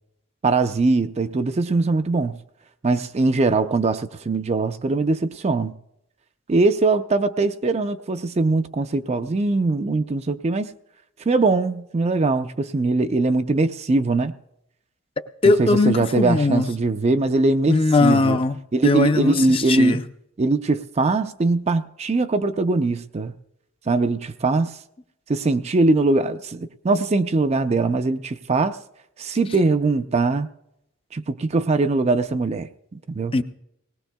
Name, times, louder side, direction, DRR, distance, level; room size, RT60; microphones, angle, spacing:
voice 1, 0.4-2.3 2.8-5.7 6.5-10.7 11.3-14.3 15.4-18.4 18.7-20.0 20.4-23.3 23.9-24.7 25.3-28.8 29.2-30.5 31.1-33.3, right 3 dB, 30° right, 0.4 m, -21 dB
voice 2, 15.4-16.7 17.7-20.0 33.3-33.4, left 3 dB, 25° left, 0.5 m, -19 dB
19.5 x 18.5 x 2.2 m
head